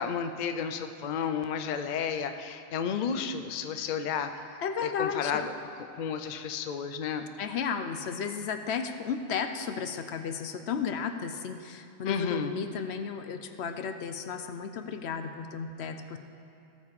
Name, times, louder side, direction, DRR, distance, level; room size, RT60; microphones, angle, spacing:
voice 1, 0.0-4.4 4.8-5.5 5.8-7.2 12.1-12.5, left 7 dB, 50° left, 7 dB, 0.6 m, -32 dB
voice 2, 4.6-5.4 7.4-16.2, left 6 dB, 75° left, 8 dB, 0.9 m, -33 dB
16.0 x 6.9 x 4.8 m, 2.6 s
omnidirectional pair, 1.2 m